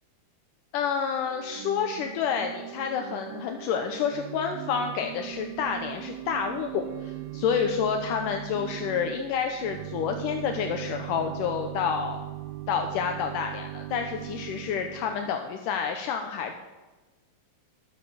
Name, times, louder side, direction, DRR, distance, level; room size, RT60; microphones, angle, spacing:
voice 1, 0.7-12.2 12.7-16.6, left 7 dB, 75° left, 5 dB, 2.1 m, -29 dB
Organ / Church bell, 1.3-15.4, right 17 dB, 90° right, 2.4 m, -39 dB
12.5 x 7.2 x 7.0 m, 1.2 s
omnidirectional pair, 4.2 m